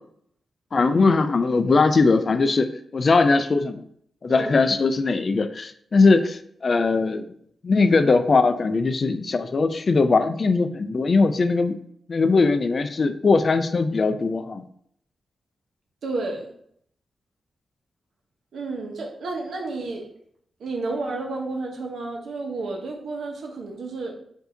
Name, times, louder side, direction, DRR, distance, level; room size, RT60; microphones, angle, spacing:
voice 1, 0.7-3.8 4.2-7.2 7.6-11.8 12.1-14.6, left 3 dB, 40° left, 10 dB, 0.3 m, -20 dB
voice 2, 4.3-4.7 16.0-16.5 18.5-20.0 20.6-24.1, right 3 dB, 80° right, 1 dB, 1.0 m, -31 dB
4.7 x 2.7 x 3.8 m, 0.67 s
wide cardioid pair, 130°, 0 cm